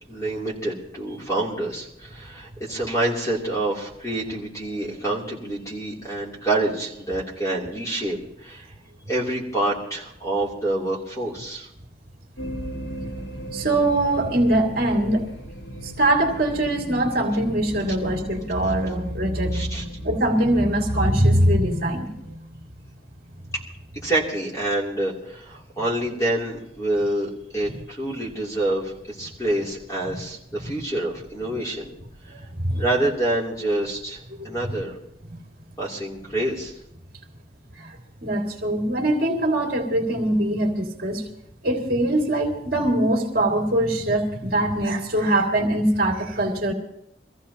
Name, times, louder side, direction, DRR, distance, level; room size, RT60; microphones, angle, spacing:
voice 1, 0.1-8.7 9.1-11.7 19.5-19.8 24.0-31.9 32.8-34.9 35.8-36.7, right 1 dB, 20° left, -3 dB, 3.0 m, -27 dB
sound 1, 12.4-22.4, equal, 70° left, 1.3 m, -38 dB
voice 2, 13.5-15.2 15.8-22.6 32.3-32.8 34.4-34.5 35.3-35.4 37.8-38.0 38.2-41.2 41.6-46.7, right 1 dB, 55° right, 1 dB, 2.4 m, -22 dB
24.5 x 15.0 x 2.9 m, 0.77 s
head